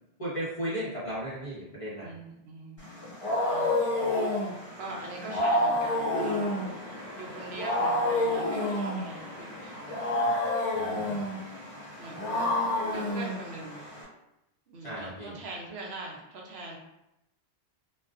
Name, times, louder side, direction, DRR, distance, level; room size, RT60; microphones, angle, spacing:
voice 1, 0.2-2.1 10.1-10.3 10.7-11.1 14.8-15.3, equal, 30° left, -9 dB, 0.9 m, -35 dB
voice 2, 2.0-3.1 3.4-6.7 7.1-10.1 10.8-11.3 12.0-13.9 14.7-16.8, right 2 dB, 75° right, -2 dB, 0.8 m, -42 dB
Wild animals, 2.8-14.0, left 1 dB, 60° left, 1.3 m, -29 dB
2.4 x 2.4 x 2.4 m, 0.88 s
omnidirectional pair, 1.1 m